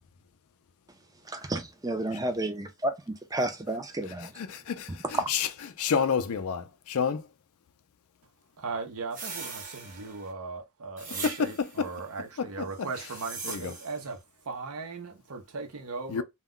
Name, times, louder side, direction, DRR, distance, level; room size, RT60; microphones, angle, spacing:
voice 1, 1.3-4.3, right 1 dB, 15° right, 0.5 m, -31 dB
voice 2, 4.1-5.5 5.8-7.3 11.2-11.9 12.4-12.7 13.4-13.7 16.1-16.2, left 6 dB, 75° left, 0.4 m, -29 dB
voice 3, 8.6-16.2, right 4 dB, 75° right, 0.7 m, -38 dB
sound 1, 9.1-10.3 11.0-11.8 12.8-14.1, right 4 dB, 35° right, 1.0 m, -40 dB
2.3 x 2.1 x 3.6 m
head